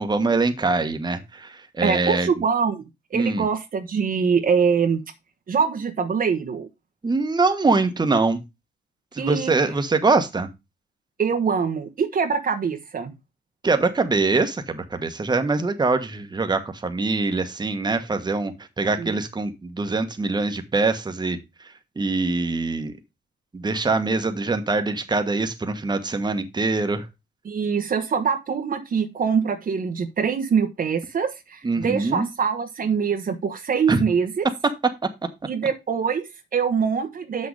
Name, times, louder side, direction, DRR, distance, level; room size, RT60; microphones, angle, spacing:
voice 1, 0.0-2.3 3.1-3.5 7.0-8.4 9.1-10.5 13.6-21.4 22.0-23.0 23.5-27.0 31.6-32.3 33.9-34.0 34.6-34.7, right 3 dB, 20° right, 7 dB, 1.4 m, -23 dB
voice 2, 1.8-2.8 3.1-5.0 5.5-6.7 9.2-9.5 11.2-13.1 19.0-19.2 27.4-34.4 35.5-37.5, right 6 dB, 45° right, 7 dB, 1.2 m, -24 dB
6.9 x 6.5 x 4.8 m, 0.23 s
cardioid pair, 90°, 20 cm